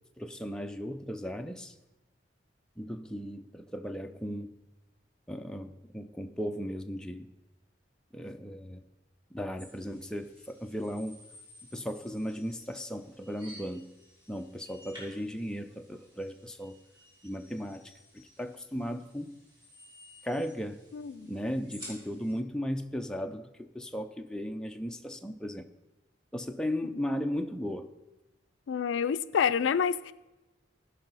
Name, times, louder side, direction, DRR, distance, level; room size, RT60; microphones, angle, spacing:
voice 1, 0.2-1.7 2.8-4.5 5.3-7.3 8.1-8.8 9.3-11.2 11.7-13.9 14.3-16.8 17.2-17.9 18.4-19.4 20.2-20.8 21.2-25.6 26.3-27.9, equal, 5° left, 4 dB, 0.4 m, -36 dB
sound 1, 9.6-22.3, equal, 25° right, 3.6 m, -54 dB
voice 2, 20.9-21.3 28.7-30.1, left 7 dB, 85° left, 15 dB, 0.4 m, -28 dB
16.0 x 5.6 x 4.0 m, 1.0 s
head